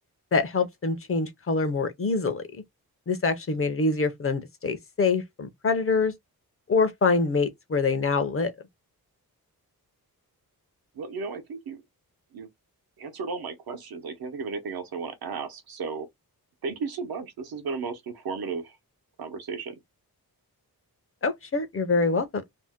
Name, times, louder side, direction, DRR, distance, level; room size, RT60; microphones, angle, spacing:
voice 1, 0.3-2.6 3.1-6.1 6.7-8.5 21.2-22.4, left 4 dB, 35° left, 0.5 m, -25 dB
voice 2, 10.9-11.8 12.3-12.5 13.0-16.1 16.6-18.8 19.2-19.8, right 4 dB, 75° right, 0.8 m, -34 dB
2.6 x 2.0 x 3.4 m
wide cardioid pair, 115°, 37 cm